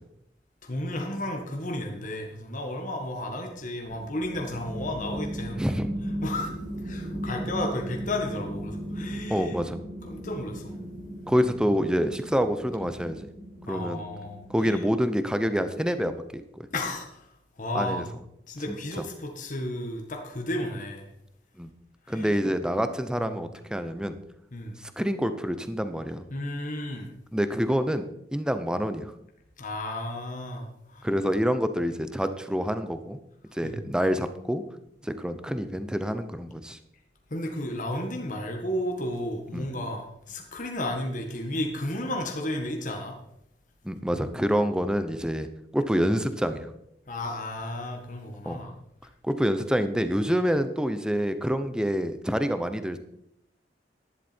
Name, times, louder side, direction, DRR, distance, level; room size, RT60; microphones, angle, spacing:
voice 1, 0.6-5.7 6.2-9.6 10.0-10.7 13.7-14.9 16.7-17.3 17.6-18.1 18.5-21.0 22.1-22.3 23.2-23.3 24.5-24.8 26.3-27.1 29.6-31.1 33.6-33.8 37.3-43.2 47.1-48.7, left 1 dB, 50° left, 2 dB, 1.6 m, -33 dB
sound 1, 3.9-15.9, equal, 85° right, 5.5 m, -37 dB
voice 2, 5.6-5.9 9.3-9.8 11.3-13.3 13.7-14.0 14.5-16.7 17.7-18.1 18.7-19.0 21.6-21.7 22.1-24.2 24.8-26.3 27.3-29.1 31.0-33.2 33.5-34.6 35.0-36.8 39.5-39.7 43.8-45.5 45.7-46.7 48.4-48.6 49.2-53.0, equal, 5° right, 10 dB, 0.8 m, -27 dB
11.5 x 10.5 x 4.4 m, 0.79 s
head